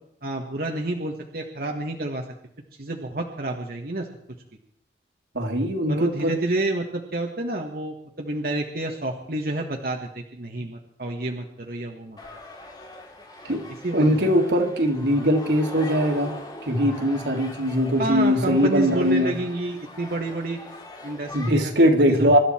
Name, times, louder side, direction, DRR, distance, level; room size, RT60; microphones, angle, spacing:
voice 1, 0.2-2.2 2.8-4.1 5.9-12.2 13.8-14.2 18.0-20.6 21.0-22.4, right 2 dB, 55° right, 1 dB, 1.6 m, -29 dB
voice 2, 5.3-6.4 13.4-13.6 13.9-16.3 16.6-19.4 21.3-22.4, equal, 80° right, 3 dB, 2.6 m, -21 dB
sound 1, 12.2-21.5, left 1 dB, 25° left, 2.4 m, -41 dB
25.5 x 12.0 x 4.5 m, 0.72 s
head